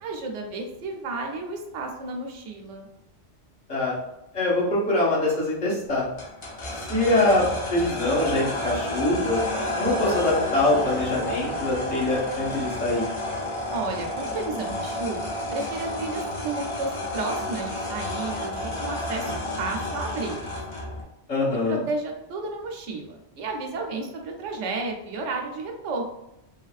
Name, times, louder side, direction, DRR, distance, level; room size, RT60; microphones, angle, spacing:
voice 1, 0.0-2.9 13.7-19.3 19.6-20.5 21.5-26.0, right 3 dB, 85° right, 2 dB, 1.0 m, -32 dB
voice 2, 4.3-6.0 6.9-9.4 9.8-13.1 21.3-21.8, left 2 dB, 70° left, -6 dB, 1.5 m, -24 dB
sound 1, 6.2-21.0, left 1 dB, 50° left, 0.3 m, -31 dB
3.3 x 2.4 x 2.4 m, 0.84 s
omnidirectional pair, 1.2 m